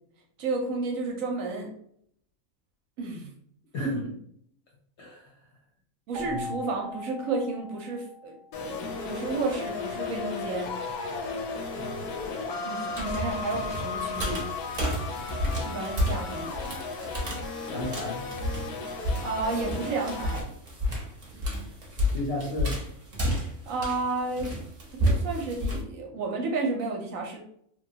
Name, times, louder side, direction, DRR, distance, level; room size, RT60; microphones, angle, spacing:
voice 1, 0.4-1.7 3.0-3.3 3.8-4.2 6.1-8.3 8.6-10.7 12.6-14.4 15.7-16.6 19.2-20.4 23.7-24.5 24.9-27.4, right 3 dB, 70° right, 1 dB, 0.9 m, -31 dB
voice 2, 5.0-5.3 6.3-6.4 11.8-12.0 17.7-18.3 22.1-22.8, left 1 dB, 60° left, -1 dB, 0.8 m, -33 dB
Keyboard (musical), 6.1-8.8, left 2 dB, 85° right, 0.4 m, -40 dB
sound 1, 8.5-20.4, left 4 dB, 85° left, 1.1 m, -35 dB
sound 2, 12.9-25.8, equal, 35° right, 0.7 m, -31 dB
3.0 x 2.2 x 2.7 m, 0.67 s
omnidirectional pair, 1.6 m